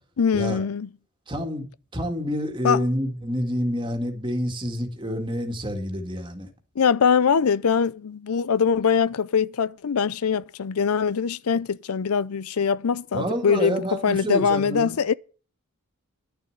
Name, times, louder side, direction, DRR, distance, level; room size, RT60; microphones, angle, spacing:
voice 1, 0.2-0.9 2.6-2.8 6.8-15.1, left 6 dB, 85° left, 0.5 m, -22 dB
voice 2, 1.3-1.6 1.9-6.5 13.1-14.9, equal, 20° right, 2.1 m, -28 dB
11.5 x 6.9 x 9.3 m
head